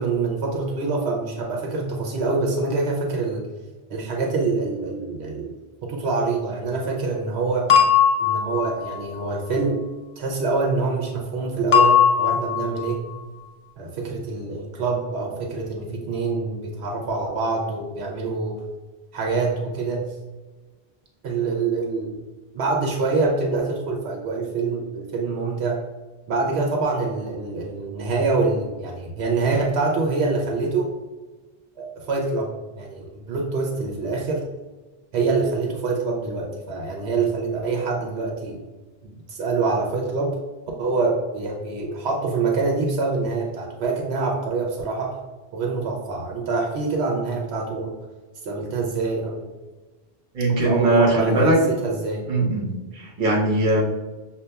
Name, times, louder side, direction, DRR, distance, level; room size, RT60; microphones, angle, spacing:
voice 1, 0.0-3.4 3.9-5.6 5.8-7.7 8.2-9.8 10.2-13.1 13.8-18.6 19.1-20.1 21.2-22.2 22.5-25.8 26.3-30.9 31.8-34.5 35.1-38.6 39.0-40.3 40.8-45.2 45.5-47.9 48.4-49.5 50.5-52.3, right 3 dB, 85° right, 0 dB, 0.9 m, -25 dB
sound 1, 7.7-9.0 11.7-12.9, left 7 dB, 45° left, 0.4 m, -18 dB
voice 2, 50.3-51.6 52.3-52.7 52.9-53.8, right 1 dB, 55° right, -3 dB, 1.0 m, -20 dB
6.5 x 2.3 x 2.2 m, 1.2 s
omnidirectional pair, 1.1 m